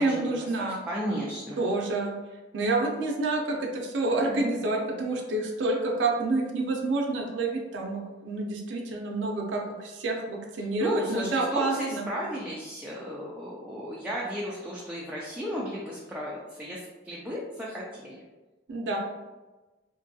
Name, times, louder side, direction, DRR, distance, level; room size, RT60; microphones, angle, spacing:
voice 1, 0.0-0.8 1.6-2.2 2.5-12.0 18.7-19.0, right 2 dB, 75° right, 0 dB, 0.5 m, -28 dB
voice 2, 0.6-1.6 10.8-16.8 17.0-18.2, equal, 5° right, -6 dB, 0.3 m, -34 dB
2.5 x 2.3 x 2.6 m, 1.2 s
head